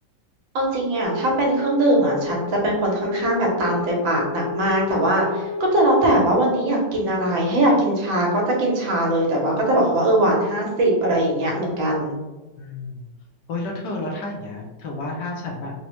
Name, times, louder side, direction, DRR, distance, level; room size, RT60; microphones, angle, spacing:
voice 1, 0.5-12.2, right 1 dB, 80° right, -2 dB, 1.6 m, -21 dB
sound 1, 1.0-6.3, left 3 dB, 40° right, 0.9 m, -31 dB
voice 2, 12.6-13.1 13.5-15.7, left 2 dB, 70° left, 0 dB, 1.1 m, -31 dB
4.1 x 2.1 x 2.9 m, 1.1 s
omnidirectional pair, 2.1 m